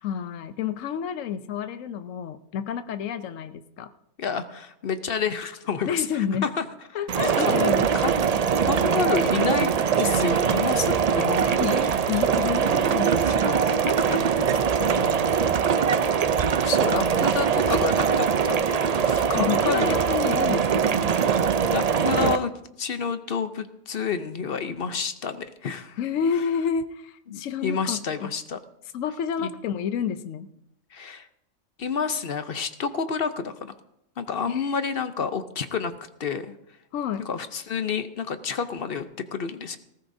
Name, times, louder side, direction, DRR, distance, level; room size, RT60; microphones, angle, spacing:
voice 1, 0.0-3.9 5.9-6.5 6.9-7.9 11.6-15.8 19.3-21.0 26.0-28.3 28.9-30.5 34.5-35.0 36.9-37.3, left 8 dB, 85° left, 10 dB, 1.0 m, -30 dB
voice 2, 4.2-6.6 7.2-7.7 7.9-8.1 8.7-11.6 16.1-16.3 16.6-20.1 21.7-22.5 22.8-26.0 27.3-28.6 29.4-29.5 30.9-31.3 31.8-33.8 34.2-35.9 36.2-36.5 37.3-39.8, left 6 dB, 55° left, 10 dB, 0.8 m, -29 dB
sound 1, 7.1-22.4, right 7 dB, 65° right, 0.4 m, -22 dB
19.0 x 15.0 x 2.7 m, 0.80 s
omnidirectional pair, 1.3 m